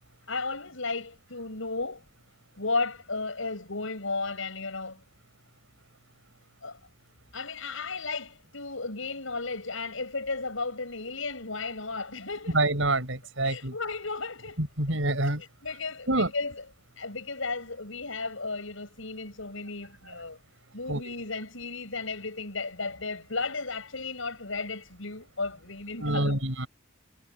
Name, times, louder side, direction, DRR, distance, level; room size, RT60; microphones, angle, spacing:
voice 1, 0.3-2.0 2.6-5.0 6.6-6.8 7.3-12.6 13.4-14.6 15.4-16.7 17.0-20.4 20.7-26.4, left 3 dB, 80° left, 6.0 m, -34 dB
voice 2, 12.5-13.7 14.6-15.4 16.1-16.3 20.9-21.1 26.0-26.7, right 2 dB, 75° right, 5.9 m, -26 dB
head